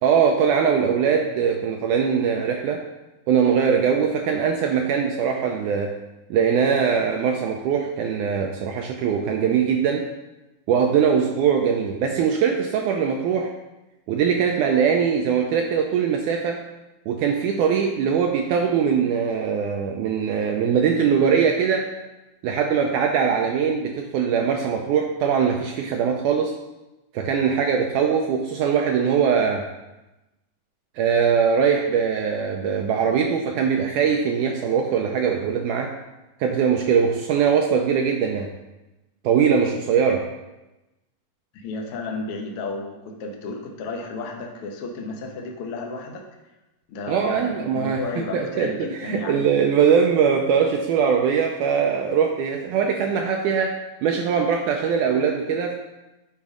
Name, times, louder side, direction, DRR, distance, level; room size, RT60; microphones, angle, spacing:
voice 1, 0.0-2.8 3.3-6.0 6.3-10.1 10.7-13.5 14.1-16.6 17.1-21.9 22.4-26.6 27.1-29.6 31.0-35.9 36.4-38.5 39.2-40.3 47.1-53.7 54.0-55.8, right 7 dB, 80° right, 2 dB, 1.9 m, -21 dB
voice 2, 41.5-46.2 46.9-49.5, left 3 dB, 75° left, 1 dB, 1.3 m, -32 dB
9.8 x 5.1 x 3.6 m, 1.0 s
omnidirectional pair, 4.0 m